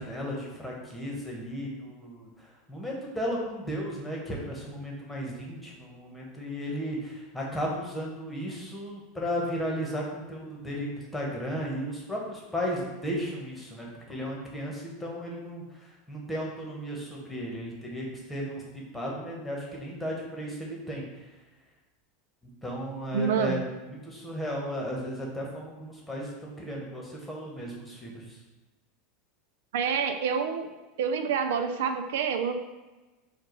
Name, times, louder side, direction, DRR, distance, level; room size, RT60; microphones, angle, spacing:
voice 1, 0.0-2.3 2.7-15.6 16.1-21.0 22.6-28.1, equal, 5° left, -3 dB, 1.2 m, -35 dB
voice 2, 23.1-23.6 29.7-30.7 31.0-32.6, right 6 dB, 80° right, 7 dB, 0.4 m, -27 dB
4.5 x 2.4 x 4.6 m, 1.1 s
supercardioid pair, 120°, 0 cm